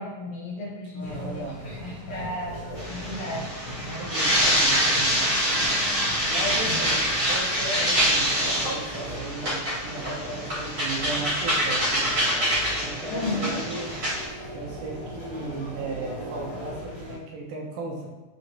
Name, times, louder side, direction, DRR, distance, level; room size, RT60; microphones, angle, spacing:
voice 1, 0.0-1.4 1.8-4.0 6.6-6.8 13.1-13.7, left 1 dB, 75° left, -5 dB, 1.6 m, -34 dB
voice 2, 0.9-1.6 4.0-5.2 6.3-7.0 7.3-12.1 12.8-13.9 14.5-18.1, right 2 dB, 80° right, -2 dB, 2.3 m, -36 dB
sound 1, 1.0-17.2, equal, 55° left, 1.3 m, -39 dB
sound 2, 2.8-14.2, equal, 45° right, 1.6 m, -25 dB
5.6 x 3.2 x 2.6 m, 1.2 s
omnidirectional pair, 3.6 m